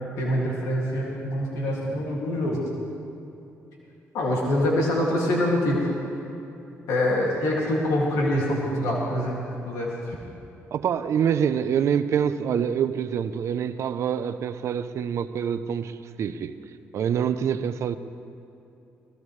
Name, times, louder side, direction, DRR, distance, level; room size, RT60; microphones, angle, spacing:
voice 1, 0.2-2.7 4.1-5.9 6.9-10.2, left 1 dB, 85° left, -3 dB, 2.5 m, -25 dB
voice 2, 10.7-16.5 16.9-18.0, right 8 dB, 65° right, 11 dB, 0.7 m, -26 dB
23.0 x 18.5 x 3.3 m, 2.8 s
cardioid pair, 80°, 5 cm